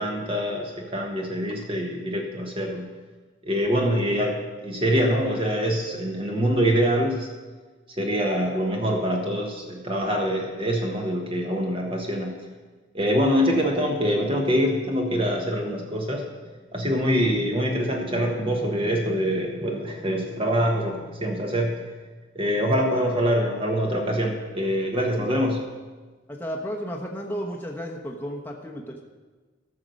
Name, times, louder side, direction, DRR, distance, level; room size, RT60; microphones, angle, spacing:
voice 1, 0.0-2.9 3.4-7.3 8.0-12.3 12.9-16.3 16.7-21.8 22.3-25.6, equal, 25° right, 1 dB, 1.2 m, -24 dB
voice 2, 26.3-29.0, equal, 10° left, -1 dB, 1.0 m, -33 dB
13.0 x 6.7 x 6.4 m, 1.3 s
head